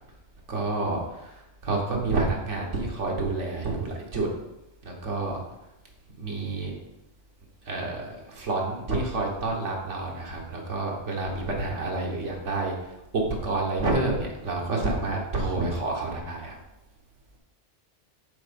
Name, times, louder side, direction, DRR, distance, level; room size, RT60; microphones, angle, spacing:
voice 1, 0.5-1.3 1.6-4.3 4.8-5.4 6.2-6.7 7.7-12.7 13.1-16.6, right 2 dB, 90° right, -1 dB, 1.7 m, -29 dB
7.2 x 3.9 x 5.2 m, 0.93 s
omnidirectional pair, 1.2 m